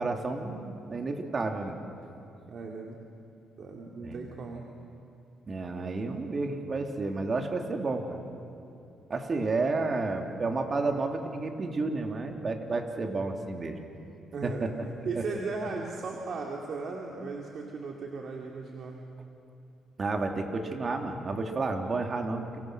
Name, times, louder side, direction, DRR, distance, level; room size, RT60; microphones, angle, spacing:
voice 1, 0.0-1.8 4.0-4.2 5.5-8.2 9.1-13.8 14.4-14.7 15.1-15.2 20.0-22.6, right 3 dB, 40° right, 4 dB, 2.9 m, -31 dB
voice 2, 2.5-3.0 3.6-4.7 13.0-13.3 14.3-14.7 15.0-19.1, right 4 dB, 55° right, 0 dB, 2.4 m, -37 dB
30.0 x 25.0 x 6.3 m, 2.7 s
cardioid pair, 90°, 0 cm